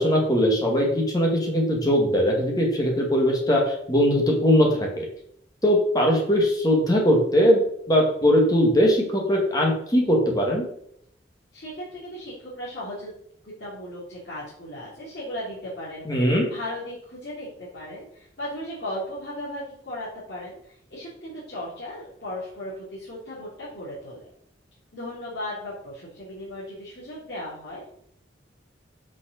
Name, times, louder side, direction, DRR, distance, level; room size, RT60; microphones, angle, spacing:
voice 1, 0.0-5.1 5.6-10.6 16.1-16.4, equal, 20° left, -1 dB, 2.1 m, -20 dB
voice 2, 11.5-13.1 13.4-16.1 16.4-24.2 24.9-27.9, left 1 dB, 65° left, -9 dB, 3.2 m, -36 dB
6.3 x 5.8 x 6.6 m, 0.69 s
head